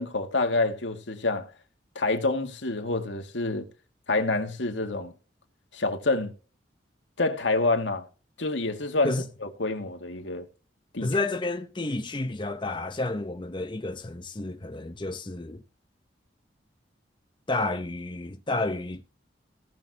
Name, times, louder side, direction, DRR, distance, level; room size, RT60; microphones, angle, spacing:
voice 1, 0.0-1.5 2.0-3.7 4.1-5.1 5.7-6.3 7.2-8.1 8.4-9.1 9.6-10.5 10.9-11.1, left 2 dB, 85° left, 1.9 m, -27 dB
voice 2, 11.0-15.6 17.5-19.0, left 2 dB, 25° left, 0.9 m, -30 dB
18.0 x 6.4 x 2.9 m
head